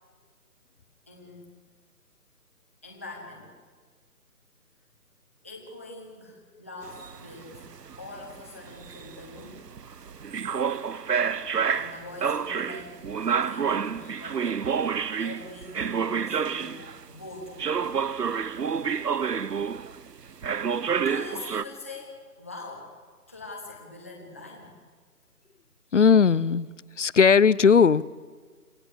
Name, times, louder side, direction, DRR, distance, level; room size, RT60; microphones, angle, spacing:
voice 1, 1.1-1.4 2.8-3.5 5.4-7.6 8.0-9.6 11.5-14.6 15.2-17.8 21.0-22.9 23.3-24.8, left 2 dB, 10° left, -2 dB, 0.8 m, -43 dB
sound 1, 6.8-17.0 17.6-20.1 20.4-21.6, right 6 dB, 85° right, 1.0 m, -29 dB
voice 2, 25.9-26.7 27.0-28.0, left 6 dB, 50° left, 22 dB, 0.5 m, -18 dB
26.5 x 14.5 x 8.0 m, 1.5 s
figure-of-eight pair, 165°, 47 cm